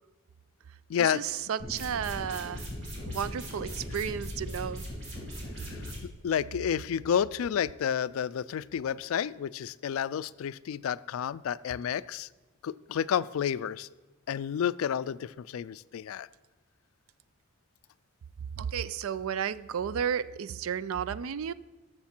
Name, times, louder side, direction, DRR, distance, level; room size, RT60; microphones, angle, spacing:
voice 1, 1.0-2.7 3.0-4.9 18.6-21.5, right 8 dB, 80° right, 0.4 m, -33 dB
sound 1, 1.6-6.0, equal, 65° right, 2.8 m, -39 dB
voice 2, 6.2-12.3 12.6-13.9 14.3-16.3, left 8 dB, 80° left, 0.3 m, -30 dB
13.0 x 6.6 x 4.4 m
head